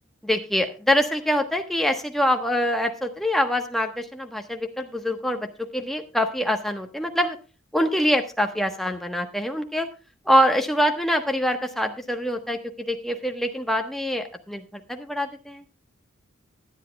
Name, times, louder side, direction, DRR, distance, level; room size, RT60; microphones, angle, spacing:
voice 1, 0.2-5.5 5.7-7.4 7.7-9.9 10.2-15.6, equal, ahead, 4 dB, 1.2 m, -24 dB
19.0 x 10.5 x 2.3 m, 0.33 s
head